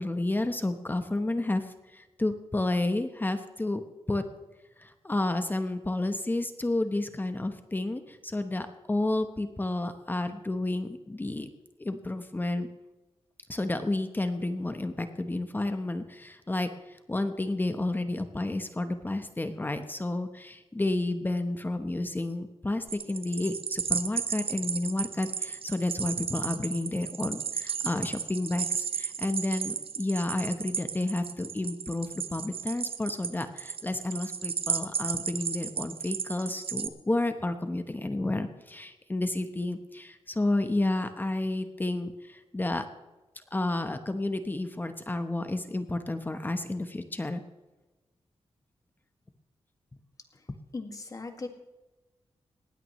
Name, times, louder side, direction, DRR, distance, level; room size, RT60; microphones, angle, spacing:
voice 1, 0.0-3.8 4.1-4.2 4.8-11.5 11.8-12.7 13.5-42.8 43.5-47.4, left 2 dB, 20° left, 8 dB, 0.9 m, -31 dB
sound 1, 22.9-36.9, right 6 dB, 65° right, 0.9 m, -34 dB
voice 2, 50.7-51.5, left 3 dB, 35° left, 5 dB, 1.9 m, -38 dB
20.0 x 16.0 x 3.1 m, 1.1 s
wide cardioid pair, 120°, 11 cm